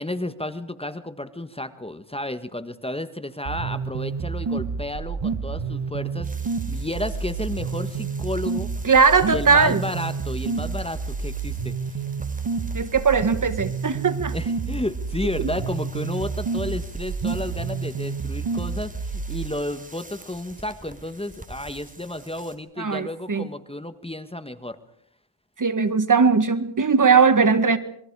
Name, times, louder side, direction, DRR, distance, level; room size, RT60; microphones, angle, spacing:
voice 1, 0.0-8.7 9.3-12.0 14.3-24.8, left 1 dB, 10° left, 1.6 m, -32 dB
sound 1, 3.5-19.5, right 5 dB, 55° right, 2.3 m, -29 dB
sound 2, 6.2-22.6, right 2 dB, 15° right, 3.9 m, -47 dB
voice 2, 8.8-9.8 12.7-14.4 22.8-23.5 25.6-27.8, right 5 dB, 40° right, 1.9 m, -19 dB
28.0 x 23.0 x 4.9 m
cardioid pair, 85°, 49 cm